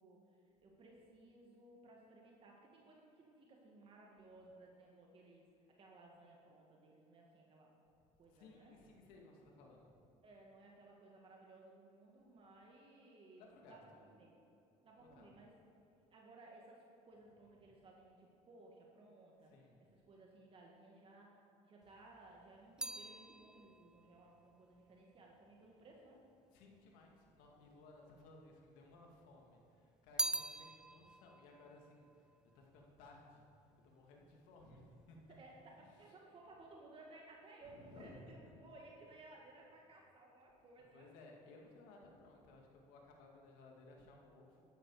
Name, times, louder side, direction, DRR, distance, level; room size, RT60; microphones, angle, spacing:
voice 1, 0.0-5.5 5.8-7.7 8.2-8.8 10.2-13.8 14.1-14.4 14.8-15.5 16.1-19.5 20.1-21.4 21.6-26.2 35.3-41.1, right 2 dB, 40° right, -1 dB, 1.9 m, -60 dB
voice 2, 8.0-10.2 13.4-14.0 15.0-15.4 17.6-17.7 19.4-19.9 26.5-35.4 35.7-36.2 37.6-38.5 39.0-39.1 40.9-44.7, left 2 dB, 85° left, 0 dB, 2.3 m, -60 dB
sound 1, 21.8-26.3 27.0-27.8 28.1-29.3 29.6-33.1 33.4-33.9, right 1 dB, 5° right, 0.3 m, -45 dB
13.5 x 11.0 x 4.9 m, 2.8 s
cardioid pair, 100°, 14 cm